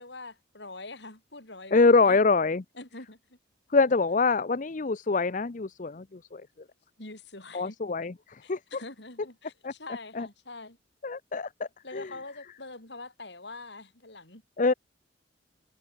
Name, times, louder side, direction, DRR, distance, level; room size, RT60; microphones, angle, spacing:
voice 1, 0.0-2.2 2.7-3.4 7.0-7.8 8.4-10.8 11.8-14.4, left 2 dB, 60° left, 5.0 m, -44 dB
voice 2, 1.7-2.6 3.7-6.4 7.5-8.6 9.6-9.7 10.2-10.3 11.0-12.1 14.6-14.7, left 4 dB, 45° left, 0.6 m, -25 dB
head